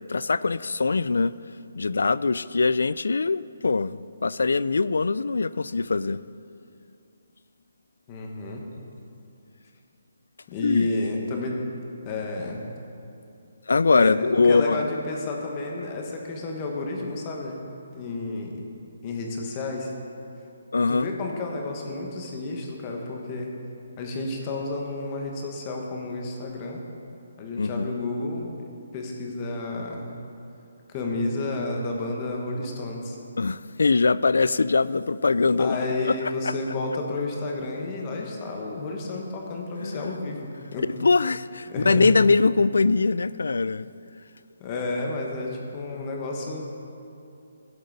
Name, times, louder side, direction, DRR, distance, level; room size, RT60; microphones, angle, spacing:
voice 1, 0.1-1.3 1.8-6.2 10.6-10.9 13.7-14.9 20.7-21.1 27.6-27.9 33.4-36.5 39.8-40.2 41.0-43.9, left 4 dB, 85° left, 0.3 m, -22 dB
voice 2, 8.1-8.6 10.5-11.6 12.0-12.6 13.9-18.6 19.0-19.9 20.9-23.5 24.0-26.8 27.4-28.5 28.9-30.1 30.9-33.2 35.6-40.9 41.7-42.1 44.6-46.6, left 2 dB, 20° left, 1.2 m, -31 dB
16.5 x 7.9 x 4.0 m
hypercardioid pair, 175°, 0 cm